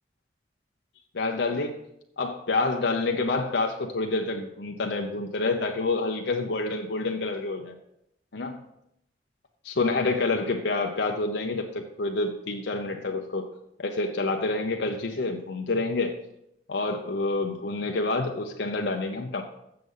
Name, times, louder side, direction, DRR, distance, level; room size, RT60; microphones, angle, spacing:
voice 1, 1.1-1.8 2.2-7.7 8.3-8.6 9.6-13.5 13.8-16.2 16.7-19.4, left 3 dB, 70° left, 2 dB, 0.7 m, -28 dB
7.8 x 6.7 x 5.5 m, 0.79 s
head